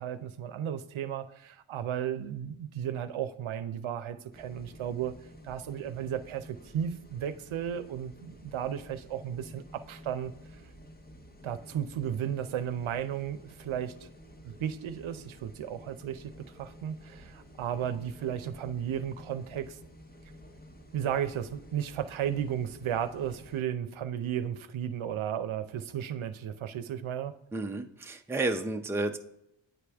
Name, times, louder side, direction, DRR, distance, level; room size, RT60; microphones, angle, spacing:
voice 1, 0.0-5.1 5.4-10.3 11.4-14.1 14.4-19.8 20.9-27.3, right 9 dB, 80° right, 11 dB, 0.7 m, -34 dB
sound 1, 4.3-23.6, equal, 20° left, 0.8 m, -51 dB
voice 2, 27.5-29.2, right 2 dB, 5° right, 5 dB, 0.5 m, -31 dB
9.1 x 4.9 x 3.4 m, 0.81 s
wide cardioid pair, 110°, 48 cm